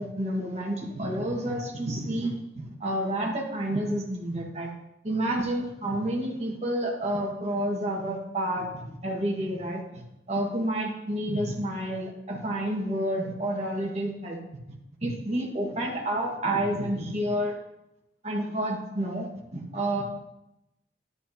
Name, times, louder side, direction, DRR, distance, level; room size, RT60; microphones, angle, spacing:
voice 1, 0.0-4.7 5.0-10.0 10.3-14.4 15.0-17.5 18.2-20.0, right 1 dB, 35° right, -1 dB, 1.7 m, -29 dB
11.0 x 9.1 x 2.9 m, 0.89 s
head